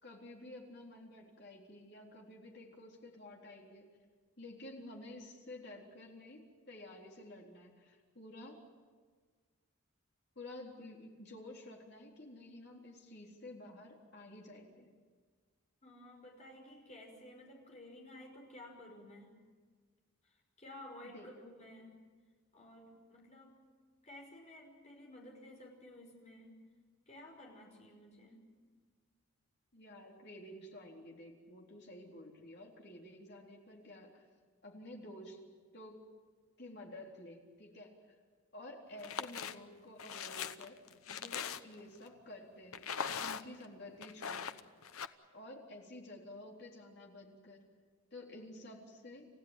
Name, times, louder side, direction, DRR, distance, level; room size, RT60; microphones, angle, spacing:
voice 1, 0.0-3.9 4.4-8.6 10.4-14.9 21.0-21.3 29.7-34.3 34.6-35.4 35.7-36.1 36.6-38.1 38.5-40.8 41.1-42.9 43.1-44.5 45.3-47.6 48.1-49.3, left 1 dB, 50° left, -1 dB, 3.9 m, -51 dB
voice 2, 15.8-19.4 20.2-22.0 22.5-23.6 24.0-26.6 27.1-28.5, left 1 dB, 30° left, 1 dB, 5.4 m, -54 dB
sound 1, 39.0-39.5 40.0-41.9 42.7-43.6 44.0-45.1, left 7 dB, 85° left, 0.9 m, -40 dB
29.5 x 15.5 x 9.2 m, 1.5 s
head